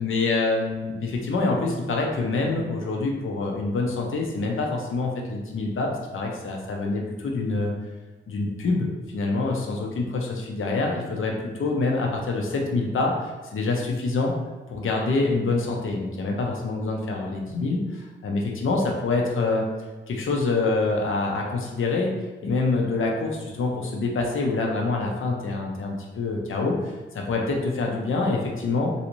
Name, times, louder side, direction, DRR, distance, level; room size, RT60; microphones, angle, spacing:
voice 1, 0.0-7.7 8.3-11.3 11.6-14.3 14.7-19.7 20.1-22.1 22.4-28.9, left 3 dB, 75° left, 0 dB, 0.7 m, -26 dB
3.1 x 2.6 x 3.0 m, 1.2 s
cardioid pair, 55°, 21 cm